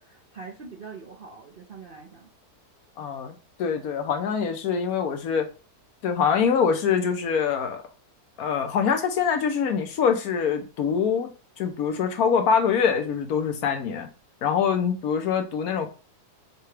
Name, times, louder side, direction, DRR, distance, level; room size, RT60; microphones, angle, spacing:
voice 1, 0.0-2.3, right 4 dB, 50° right, 0.7 m, -43 dB
voice 2, 3.0-5.5 6.0-7.8 8.4-11.3 11.6-14.1 14.4-15.9, left 6 dB, 70° left, 1.1 m, -24 dB
6.6 x 2.3 x 3.2 m
omnidirectional pair, 1.7 m